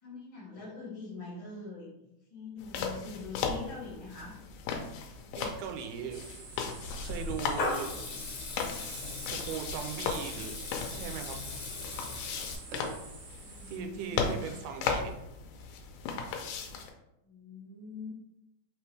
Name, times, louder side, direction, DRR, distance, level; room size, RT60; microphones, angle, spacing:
voice 1, 0.0-4.4 13.4-14.5 17.2-18.1, left 3 dB, 40° left, -6 dB, 0.4 m, -44 dB
sound 1, 2.6-16.9, left 5 dB, 90° left, 2.2 m, -37 dB
voice 2, 5.4-6.2 7.0-7.9 8.8-10.6 10.9-11.4 13.7-15.2, right 8 dB, 85° right, 5 dB, 2.1 m, -39 dB
sound 2, 6.1-13.8, right 4 dB, 70° right, 1.6 m, -49 dB
Water tap faucet / Liquid, 6.8-12.5, left 3 dB, 70° left, 1.7 m, -38 dB
5.1 x 3.0 x 3.3 m, 0.85 s
omnidirectional pair, 3.6 m